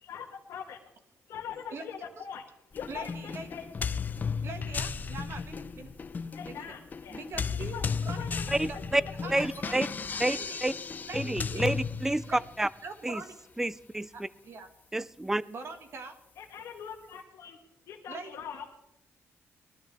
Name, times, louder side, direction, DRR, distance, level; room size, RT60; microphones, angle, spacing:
voice 1, 0.0-0.8 1.3-2.4 2.7-3.7 6.3-7.2 7.7-7.8 8.1-9.5 10.1-10.3 16.4-17.6 17.9-18.8, left 8 dB, 85° left, -1 dB, 1.5 m, -42 dB
voice 2, 1.5-1.9 2.9-3.5 4.4-5.9 6.4-6.7 7.1-9.8 10.3-10.6 11.1-11.7 12.2-12.4 12.8-13.4 14.1-14.7 15.5-16.2 18.1-18.4, right 4 dB, 55° right, 7 dB, 1.8 m, -43 dB
sound 1, 2.7-12.6, left 5 dB, 35° left, 0.6 m, -35 dB
voice 3, 8.6-9.0 9.3-9.9 10.2-10.7 11.1-12.2 12.6-12.7 13.0-13.2 13.6-14.1 14.9-15.4, right 1 dB, 10° right, 19 dB, 0.4 m, -29 dB
20.0 x 12.0 x 3.5 m, 0.86 s
cardioid pair, 120°, 5 cm